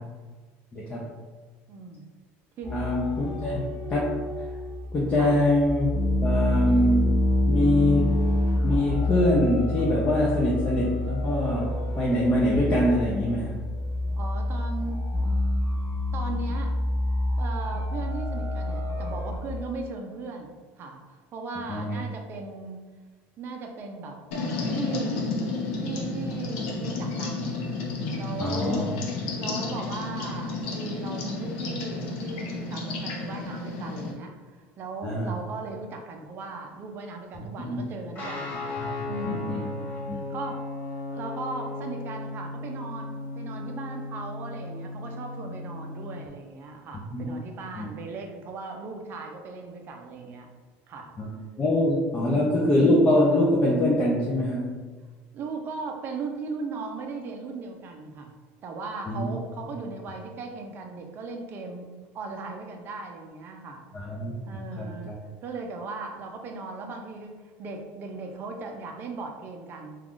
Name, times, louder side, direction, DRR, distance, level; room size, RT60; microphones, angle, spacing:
voice 1, 0.7-1.1 2.7-4.2 4.9-8.2 8.6-13.6 21.7-22.0 28.4-28.9 35.0-35.4 37.6-37.8 39.0-39.7 40.1-40.2 47.1-47.3 47.8-47.9 51.2-51.3 51.6-54.8 59.1-59.3 63.9-65.1, left 1 dB, 20° left, -5 dB, 0.4 m, -24 dB
voice 2, 1.7-2.0 2.6-2.9 5.2-5.3 14.1-15.0 16.1-16.8 17.4-22.9 23.4-24.2 24.7-25.4 25.8-27.6 28.2-28.9 29.4-38.6 39.0-39.7 40.1-40.7 40.9-50.5 50.9-51.1 52.2-52.6 55.3-58.3 58.6-63.8 64.4-65.1 65.4-70.0, right 3 dB, 35° right, 3 dB, 0.4 m, -38 dB
sound 1, 2.6-19.4, left 1 dB, ahead, 1.4 m, -27 dB
sound 2, 24.3-34.1, left 3 dB, 80° left, 0.6 m, -31 dB
Guitar, 38.1-46.2, left 3 dB, 35° left, 1.4 m, -36 dB
3.4 x 2.3 x 2.4 m, 1.4 s
cardioid pair, 150°, 6 cm